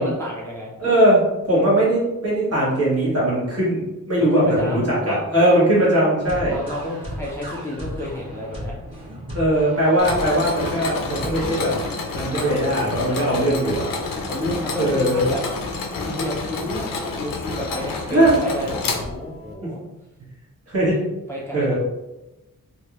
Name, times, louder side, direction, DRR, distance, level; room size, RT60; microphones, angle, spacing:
voice 1, 0.0-0.7 4.2-5.7 6.5-8.8 12.3-12.5 14.3-15.4 16.0-19.8 20.8-21.0 21.3-21.7, left 1 dB, 10° left, -4 dB, 0.5 m, -31 dB
voice 2, 0.8-6.6 9.3-11.7 12.1-13.9 14.8-15.3 18.1-18.3 20.7-21.0 21.5-21.7, right 1 dB, 45° right, -7 dB, 1.4 m, -19 dB
sound 1, 6.2-11.5, equal, 15° right, 1.4 m, -35 dB
Mechanisms, 10.0-19.5, left 3 dB, 85° left, 0.6 m, -29 dB
3.1 x 2.6 x 2.9 m, 0.99 s
wide cardioid pair, 125°, 33 cm